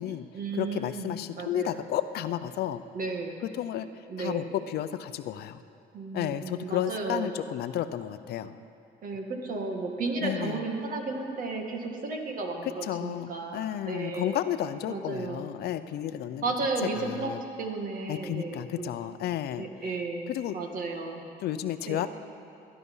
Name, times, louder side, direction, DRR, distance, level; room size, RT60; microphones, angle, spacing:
voice 1, 0.0-1.8 2.9-3.4 4.1-4.6 5.9-7.3 9.0-14.4 14.9-15.4 16.4-17.3 17.6-18.9 19.6-21.2 21.9-22.1, right 3 dB, 55° right, 2 dB, 2.1 m, -34 dB
voice 2, 0.5-2.8 3.5-3.9 4.2-5.6 6.1-8.6 10.2-10.6 12.8-16.4 16.9-17.4 18.1-19.7 20.3-20.6 21.4-22.1, left 11 dB, 70° left, 12 dB, 0.7 m, -32 dB
19.5 x 11.0 x 5.6 m, 2.8 s
cardioid pair, 110°, 17 cm